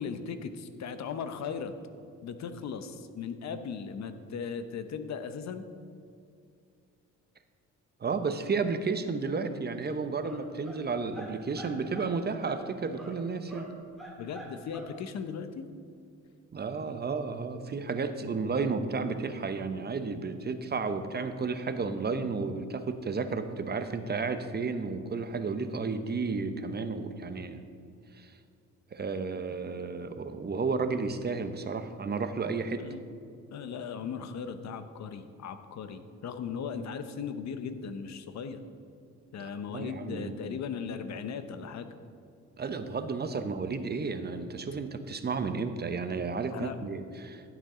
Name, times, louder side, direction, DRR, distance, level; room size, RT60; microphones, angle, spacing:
voice 1, 0.0-1.7 2.2-5.7 14.2-15.6 32.8-33.1 33.5-38.6 39.3-41.9 46.5-46.8, left 6 dB, 65° left, 9 dB, 0.8 m, -37 dB
voice 2, 8.0-13.7 16.5-27.6 28.2-28.3 28.9-32.9 39.4-40.6 42.6-47.4, right 4 dB, 35° right, 9 dB, 0.8 m, -32 dB
sound 1, 9.9-10.0 10.2-10.8 11.1-12.1 12.4-12.6 13.0-13.2 13.5-14.8, right 1 dB, ahead, 2.5 m, -45 dB
15.0 x 8.0 x 3.7 m, 2.4 s
cardioid pair, 90°, 30 cm